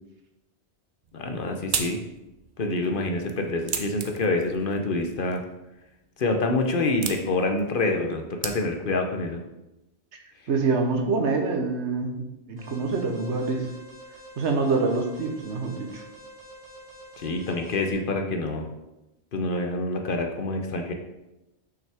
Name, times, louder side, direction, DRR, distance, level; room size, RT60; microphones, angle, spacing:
sound 1, 1.0-9.0, right 6 dB, 55° right, 0.7 m, -37 dB
voice 1, 1.1-2.0 2.6-5.4 6.2-9.4 17.2-18.7 19.3-20.9, left 2 dB, 55° left, 4 dB, 0.9 m, -26 dB
voice 2, 10.2-13.7 14.4-16.0, right 4 dB, 85° right, 4 dB, 1.2 m, -26 dB
Alarm, 12.6-17.9, right 1 dB, 20° right, 1.9 m, -47 dB
6.1 x 5.8 x 3.5 m, 0.95 s
omnidirectional pair, 1.1 m